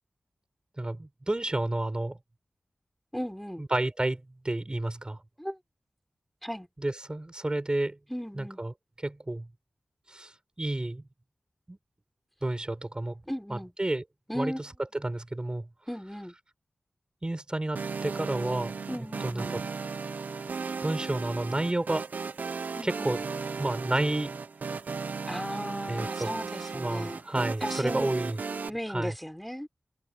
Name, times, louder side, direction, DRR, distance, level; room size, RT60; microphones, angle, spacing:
voice 1, 0.8-2.2 3.6-5.2 6.8-8.0 8.3-9.5 10.1-11.0 11.7-11.8 12.4-13.2 13.5-14.0 14.3-15.7 17.2-19.6 20.8-22.1 22.8-23.2 23.6-24.4 25.9-26.3 26.7-28.4 28.9-29.1, right 2 dB, 30° right, 6.7 m, -31 dB
voice 2, 3.1-3.7 5.4-5.6 6.4-6.7 8.1-8.6 13.3-13.7 14.3-14.6 15.9-16.3 18.9-19.5 22.7-23.1 25.3-27.2 27.6-28.1 28.7-29.7, equal, 5° left, 4.6 m, -36 dB
sound 1, 17.7-28.7, right 5 dB, 85° right, 1.2 m, -36 dB
cardioid pair, 40°, 3 cm